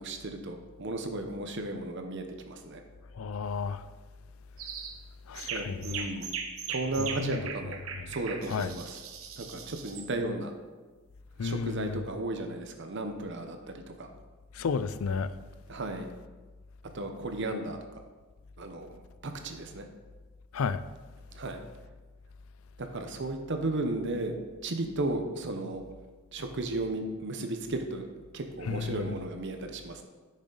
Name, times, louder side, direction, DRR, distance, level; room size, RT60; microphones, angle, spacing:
voice 1, 0.0-2.8 5.5-6.2 6.7-7.8 8.1-9.0 9.4-10.5 11.4-14.1 15.7-16.1 16.9-17.8 18.6-19.9 21.3-21.6 22.8-24.3 24.6-25.8 26.3-28.0 28.3-30.0, right 2 dB, 60° right, 0.8 m, -34 dB
voice 2, 3.2-3.8 5.3-6.1 7.0-7.5 8.0-8.1 8.5-8.7 11.4-12.0 14.5-15.3 20.5-20.8 28.7-29.2, left 5 dB, 80° left, 0.4 m, -32 dB
sound 1, 4.6-5.0 5.4-10.1, right 6 dB, 85° right, 1.0 m, -39 dB
10.0 x 6.6 x 3.9 m
head